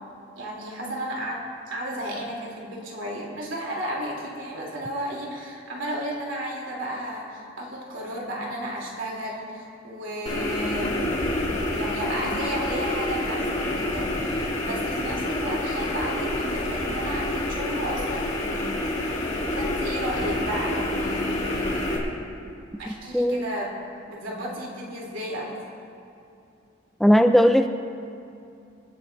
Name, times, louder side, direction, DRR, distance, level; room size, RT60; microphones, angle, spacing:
voice 1, 0.3-1.4 1.7-11.1 11.6-22.0 22.8-25.6, equal, 75° right, -3 dB, 3.3 m, -33 dB
sound 1, 10.3-22.0, left 1 dB, 35° left, 2.2 m, -28 dB
voice 2, 22.9-23.5 27.0-27.7, equal, ahead, 6 dB, 0.4 m, -18 dB
26.0 x 12.0 x 2.7 m, 2.6 s
head